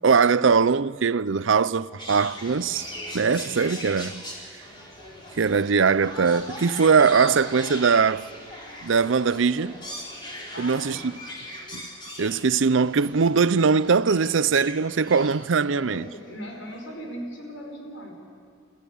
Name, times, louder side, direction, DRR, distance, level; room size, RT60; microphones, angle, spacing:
voice 1, 0.0-2.9 3.1-4.2 5.4-8.3 8.8-9.8 10.6-11.0 11.7-11.8 12.2-16.1, right 5 dB, 75° right, 0.6 m, -21 dB
sound 1, 2.0-16.1 16.7-16.8, left 1 dB, 25° left, 4.4 m, -40 dB
voice 2, 10.5-11.1 15.7-18.1, equal, 80° left, 5.3 m, -38 dB
27.5 x 14.5 x 8.6 m
head